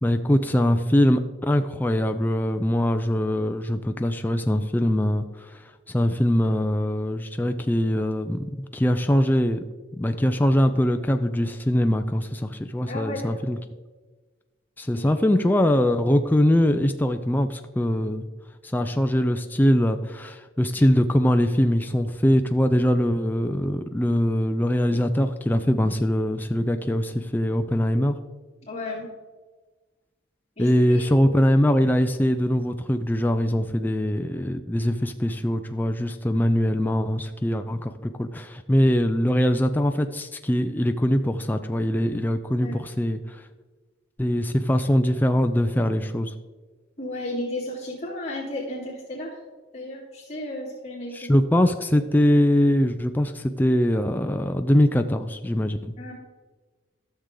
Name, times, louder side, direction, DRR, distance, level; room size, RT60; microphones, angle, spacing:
voice 1, 0.0-9.6 10.0-13.6 14.8-18.3 18.7-28.1 30.6-43.4 44.2-46.3 51.1-55.9, equal, 10° left, 7 dB, 0.3 m, -22 dB
voice 2, 12.9-13.3 14.9-15.1 28.6-29.1 30.6-31.3 42.6-42.7 47.0-49.4 49.7-51.3 56.0-56.1, left 1 dB, 30° left, -10 dB, 2.7 m, -33 dB
13.5 x 6.8 x 3.7 m, 1.3 s
head